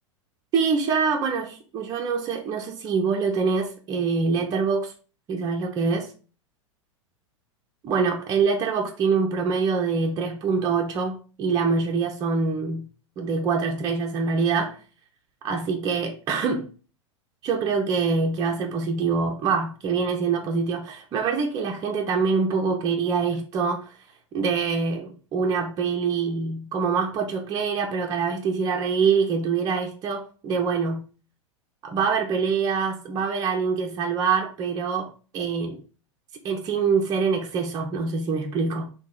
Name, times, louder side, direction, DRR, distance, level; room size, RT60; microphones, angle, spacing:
voice 1, 0.5-4.9 5.3-6.1 7.8-12.9 13.2-14.8 15.4-16.7 17.4-24.0 24.3-31.0 31.8-35.1 35.3-35.8 36.4-38.8, right 5 dB, 25° right, 1 dB, 0.5 m, -25 dB
2.8 x 2.1 x 3.6 m, 0.37 s
figure-of-eight pair, 90°, 16 cm